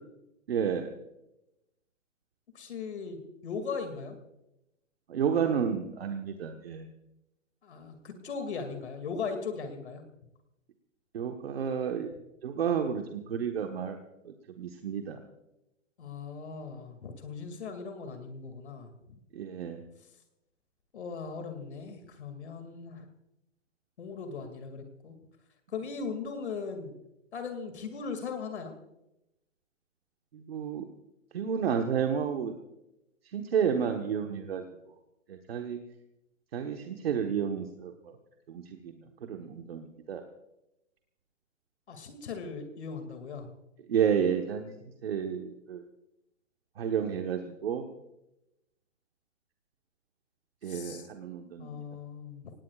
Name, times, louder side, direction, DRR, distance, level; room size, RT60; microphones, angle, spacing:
voice 1, 0.5-0.9 5.1-6.9 11.1-12.1 12.4-14.0 14.2-15.2 19.3-19.8 30.5-30.8 31.3-32.5 33.3-34.6 35.3-35.8 36.5-38.1 38.5-38.9 39.2-40.2 43.9-44.7 45.0-45.8 46.8-47.8 50.6-51.8, right 7 dB, 50° right, 4 dB, 1.3 m, -31 dB
voice 2, 2.5-4.2 7.6-10.0 16.0-18.9 20.9-23.1 24.0-25.2 25.7-26.9 27.3-28.7 41.9-43.5 50.6-51.1 51.6-52.5, left 5 dB, 60° left, 6 dB, 2.5 m, -38 dB
26.0 x 18.5 x 2.4 m, 0.89 s
hypercardioid pair, 175°, 38 cm